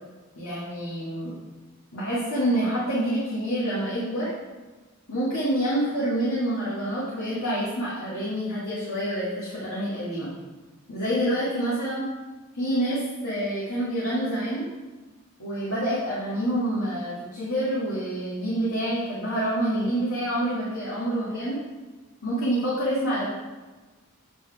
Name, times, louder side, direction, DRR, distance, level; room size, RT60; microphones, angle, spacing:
voice 1, 0.4-1.3 1.9-4.3 5.1-10.3 10.9-12.0 12.5-14.7 15.4-21.6 22.2-23.3, right 1 dB, 70° left, -9 dB, 1.8 m, -27 dB
8.8 x 4.1 x 4.7 m, 1.3 s
head